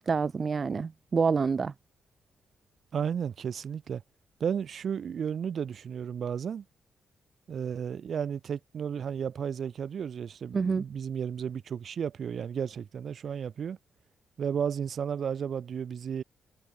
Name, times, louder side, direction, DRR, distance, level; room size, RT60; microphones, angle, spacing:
voice 1, 0.0-1.7 10.5-10.8, right 5 dB, 50° right, 0.8 m, -27 dB
voice 2, 2.9-4.0 4.4-6.6 7.5-13.8 14.4-16.2, right 7 dB, 65° right, 2.9 m, -33 dB
supercardioid pair, 55°, 0 cm